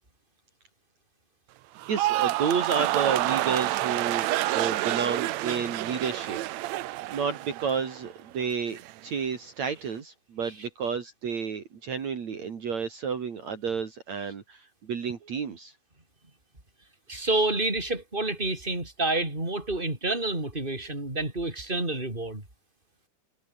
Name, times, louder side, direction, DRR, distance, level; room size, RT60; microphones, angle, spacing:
sound 1, 1.8-8.1 8.4-8.9, right 16 dB, 75° right, 1.7 m, -28 dB
voice 1, 1.9-6.8 7.1-15.7, right 6 dB, 55° right, 3.9 m, -31 dB
voice 2, 17.1-22.4, right 2 dB, 15° right, 6.0 m, -28 dB
omnidirectional pair, 3.8 m